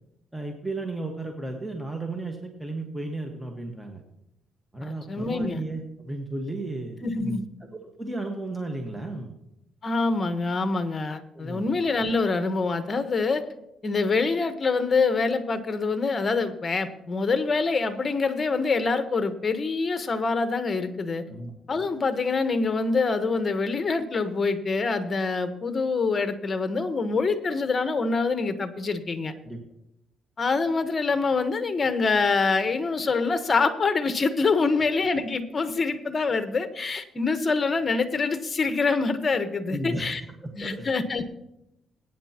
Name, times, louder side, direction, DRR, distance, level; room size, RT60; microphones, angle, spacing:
voice 1, 0.3-4.0 4.7-7.0 7.8-9.3 11.3-11.7 21.3-21.5 29.4-29.6 39.7-40.1 40.4-40.9, right 2 dB, 10° right, 2 dB, 1.5 m, -34 dB
voice 2, 4.8-5.6 7.0-7.5 9.8-13.4 13.8-21.2 21.7-29.3 30.4-40.2 40.6-41.3, left 4 dB, 35° left, 10 dB, 1.2 m, -25 dB
21.0 x 9.4 x 2.9 m, 0.84 s
cardioid pair, 90°, 0 cm